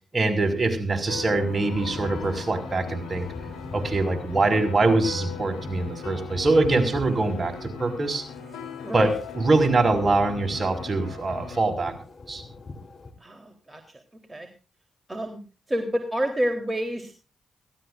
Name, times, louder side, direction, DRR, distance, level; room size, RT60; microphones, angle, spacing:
voice 1, 0.1-3.3 3.7-8.2 8.9-11.9 12.3-12.4, right 2 dB, 40° right, 6 dB, 5.9 m, -23 dB
sound 1, 1.1-11.6, left 5 dB, 85° left, 3.7 m, -39 dB
sound 2, 1.3-13.1, left 3 dB, 45° left, 3.9 m, -41 dB
voice 2, 13.2-13.8 14.3-14.5 15.1-15.4 15.7-17.2, equal, 20° right, 5 dB, 3.9 m, -28 dB
22.5 x 17.5 x 2.6 m, 0.35 s
hypercardioid pair, 40°, 0 cm